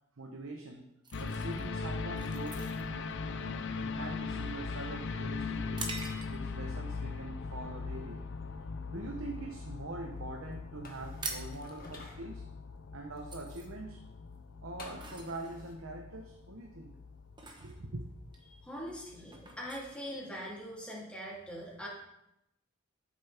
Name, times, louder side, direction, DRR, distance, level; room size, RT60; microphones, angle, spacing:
voice 1, 0.2-0.9 1.2-2.7 3.3-5.9 6.3-8.2 8.9-12.5 12.9-14.1 14.6-17.0 17.6-18.0, right 2 dB, 70° right, 2 dB, 0.9 m, -43 dB
sound 1, 1.0-6.7 7.2-7.4 7.9-8.3 8.6-9.8 10.0-10.1 10.3-10.5 10.8-20.8, right 3 dB, 20° right, 1.1 m, -46 dB
sound 2, 1.1-19.5 19.9-20.0, left 4 dB, 60° left, 0.6 m, -40 dB
sound 3, 10.8-12.2 14.8-15.7, left 3 dB, 45° left, 1.7 m, -50 dB
voice 2, 18.5-21.9, equal, 5° left, -5 dB, 2.9 m, -42 dB
12.5 x 7.3 x 3.5 m, 0.85 s
head